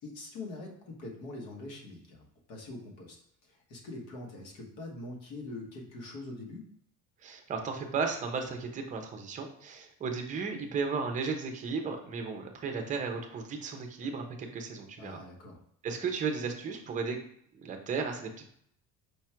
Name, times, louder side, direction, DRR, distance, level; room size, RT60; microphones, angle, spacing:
voice 1, 0.0-6.7 15.0-15.6, left 2 dB, 80° left, 0 dB, 1.4 m, -44 dB
voice 2, 7.2-15.2 15.8-17.2 17.5-18.5, right 5 dB, 20° right, 4 dB, 0.5 m, -35 dB
5.2 x 2.4 x 4.3 m, 0.68 s
cardioid pair, 165°, 36 cm